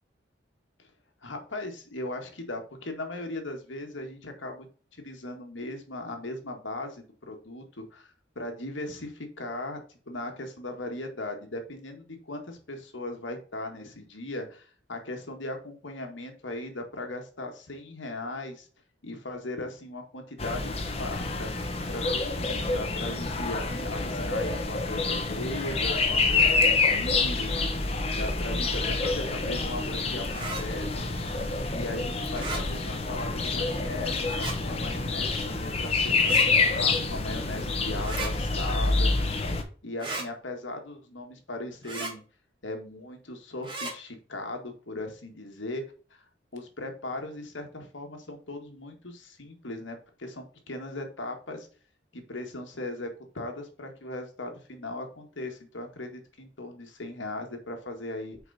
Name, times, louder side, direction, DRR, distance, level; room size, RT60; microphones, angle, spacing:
voice 1, 1.2-4.7 4.9-18.7 19.0-21.5 21.9-31.1 31.6-39.1 39.8-42.2 42.6-45.8 46.5-51.7 52.1-58.4, left 2 dB, 85° left, 4 dB, 1.8 m, -38 dB
sound 1, 20.4-39.6, left 3 dB, 30° left, 1.0 m, -27 dB
sound 2, 30.3-30.6 32.3-32.6 34.3-34.6 36.2-36.5 38.0-38.3 40.0-40.3 41.8-42.1 43.6-43.9, right 2 dB, 25° right, 1.9 m, -34 dB
6.2 x 4.9 x 4.2 m, 0.39 s
head